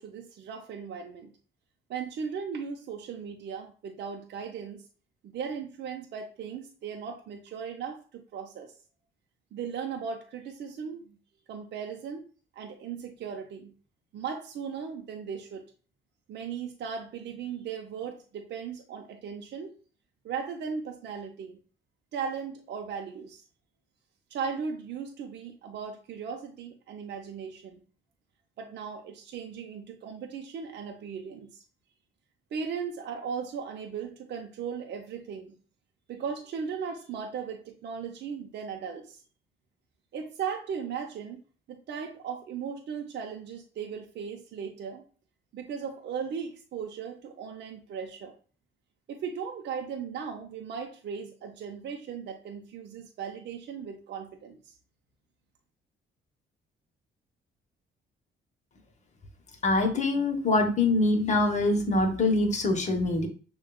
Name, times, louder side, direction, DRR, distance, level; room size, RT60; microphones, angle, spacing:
voice 1, 0.0-1.3 1.9-4.8 5.2-8.7 9.5-11.2 11.5-12.2 12.6-13.7 14.1-15.6 16.3-19.7 20.2-21.6 22.1-23.4 24.3-27.8 28.6-31.6 32.5-35.5 36.1-39.2 40.1-41.4 41.7-45.0 45.5-48.3 49.1-54.7, right 6 dB, 60° right, 3 dB, 0.6 m, -37 dB
voice 2, 59.6-63.3, left 2 dB, 35° left, 4 dB, 0.9 m, -24 dB
6.2 x 2.3 x 2.2 m, 0.39 s
cardioid pair, 90°, 20 cm